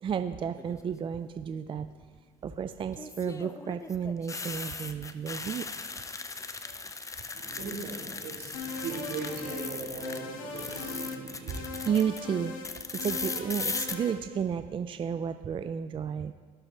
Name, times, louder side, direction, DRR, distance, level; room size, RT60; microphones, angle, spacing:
voice 1, 0.0-1.9 2.4-5.6 6.6-6.8 11.5-12.5 13.0-16.3, right 7 dB, 30° right, 10 dB, 0.4 m, -32 dB
sound 1, 0.6-1.1 2.9-10.2 10.5-12.2 12.6-13.9, left 4 dB, 20° left, 0.6 m, -38 dB
voice 2, 7.3-11.7, right 4 dB, 70° right, -2 dB, 3.1 m, -39 dB
sound 2, 8.5-9.7 10.0-11.2 11.5-12.7 13.0-14.2, left 4 dB, 85° left, 1.3 m, -40 dB
17.5 x 6.2 x 3.2 m, 1.5 s
supercardioid pair, 75°, 17 cm